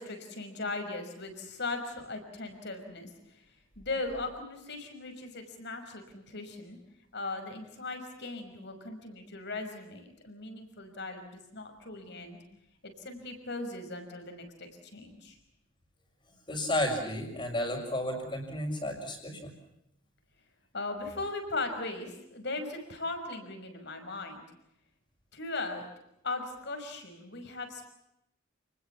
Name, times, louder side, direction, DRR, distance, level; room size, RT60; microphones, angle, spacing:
voice 1, 0.0-3.1 3.8-6.8 7.1-12.4 12.8-15.4 20.7-24.4 25.3-25.8 26.2-27.9, left 3 dB, 55° left, 6 dB, 5.8 m, -38 dB
voice 2, 16.5-19.5, left 1 dB, 25° left, -5 dB, 5.6 m, -32 dB
30.0 x 21.0 x 7.2 m, 0.83 s
head